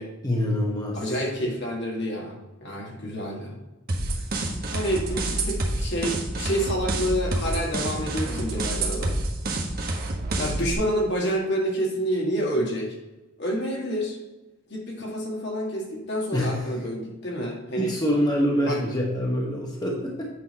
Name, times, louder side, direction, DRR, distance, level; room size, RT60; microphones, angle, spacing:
voice 1, 0.2-1.0 16.3-16.6 17.8-20.3, equal, 20° left, -2 dB, 1.1 m, -25 dB
voice 2, 0.9-3.6 4.7-9.2 10.4-12.9 13.4-14.2 14.7-18.0 18.7-18.8, equal, 60° left, -1 dB, 1.8 m, -28 dB
sound 1, 3.9-10.7, right 2 dB, 50° right, 1.1 m, -28 dB
8.4 x 3.9 x 5.2 m, 1.1 s
head